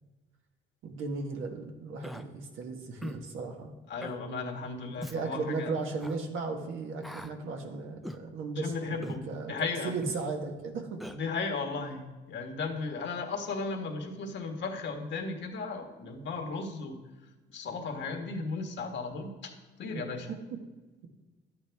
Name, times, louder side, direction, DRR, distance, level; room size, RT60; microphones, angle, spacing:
voice 1, 0.8-3.7 5.1-9.5 9.8-11.0 19.9-20.0 20.3-20.6, right 4 dB, 80° right, 3 dB, 1.4 m, -36 dB
Human voice, 2.0-2.2 3.0-3.2 4.0-4.2 5.0-5.2 6.0-6.2 7.0-7.3 8.0-8.2 9.0-9.2 10.0-10.2 11.0-11.2, equal, ahead, 0.6 m, -40 dB
voice 2, 3.9-5.7 8.6-9.9 11.1-17.0 17.5-19.5 19.8-20.3, left 4 dB, 65° left, 3 dB, 1.6 m, -35 dB
11.5 x 8.6 x 3.5 m, 1.2 s
cardioid pair, 90°, 20 cm